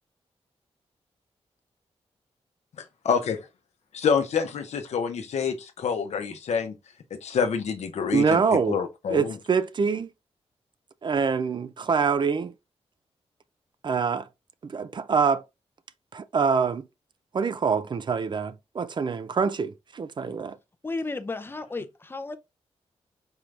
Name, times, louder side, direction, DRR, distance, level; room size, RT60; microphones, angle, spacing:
voice 1, 2.8-3.4 3.9-6.7 7.1-9.4, left 6 dB, 85° left, 0.7 m, -27 dB
voice 2, 8.1-8.8 9.1-10.1 11.0-12.5 13.8-14.2 14.6-15.4 16.1-16.9 17.3-20.6, right 5 dB, 45° right, 0.4 m, -25 dB
voice 3, 20.8-22.4, left 3 dB, 20° left, 0.5 m, -33 dB
4.5 x 3.3 x 2.5 m
cardioid pair, 90°, 11 cm